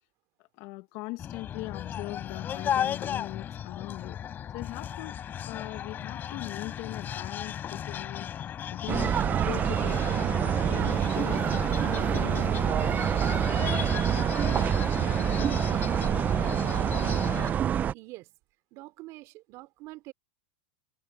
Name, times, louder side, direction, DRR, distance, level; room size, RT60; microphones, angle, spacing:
voice 1, 0.6-4.2 4.5-5.2 5.5-12.8, left 23 dB, 50° left, 1.5 m, -40 dB
sound 1, 1.2-17.5, left 9 dB, 30° left, 4.8 m, -35 dB
sound 2, 8.9-17.9, right 9 dB, 25° right, 0.6 m, -26 dB
voice 2, 17.9-18.3 18.7-20.1, right 20 dB, 45° right, 3.3 m, -45 dB
supercardioid pair, 125°, 7 cm